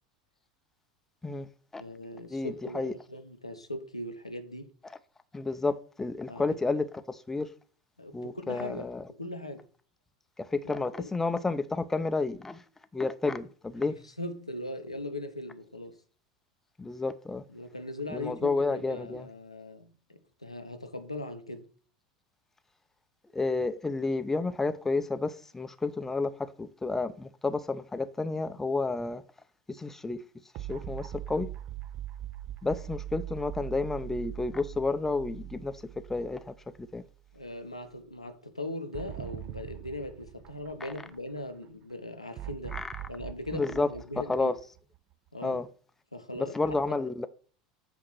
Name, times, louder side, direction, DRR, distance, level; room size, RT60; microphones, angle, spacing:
voice 1, 1.8-4.7 6.3-6.8 8.0-9.6 10.6-10.7 11.0-11.1 13.8-16.0 17.5-21.7 37.3-42.8 43.1-44.5 45.3-45.6 46.1-46.6, left 1 dB, 90° left, 0.8 m, -40 dB
voice 2, 2.3-2.9 4.8-5.0 5.3-7.5 8.1-9.1 10.5-12.6 12.9-13.9 16.8-17.4 18.1-19.3 23.3-26.3 26.6-29.2 29.8-30.2 30.7-31.5 32.6-35.7 36.1-37.0 40.8-40.9 42.7-42.9 43.5-43.9 44.3-44.6 45.4-45.7 46.4-47.3, left 3 dB, 10° left, 0.6 m, -31 dB
sound 1, 30.5-36.9 37.3-37.4 38.9-41.4 42.4-45.1, right 13 dB, 45° right, 0.8 m, -41 dB
8.3 x 2.9 x 6.2 m
figure-of-eight pair, 75°, 3 cm